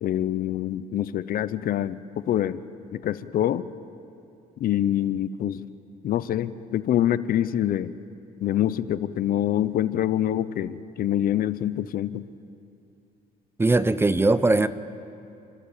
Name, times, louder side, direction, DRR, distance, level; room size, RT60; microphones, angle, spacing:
voice 1, 0.0-2.6 2.9-3.6 4.6-5.7 6.0-7.9 8.4-12.2, left 11 dB, 60° left, 15 dB, 0.7 m, -25 dB
voice 2, 13.6-14.7, right 2 dB, 15° right, 14 dB, 0.7 m, -20 dB
29.5 x 14.0 x 8.5 m, 2.6 s
cardioid pair, 110°, 17 cm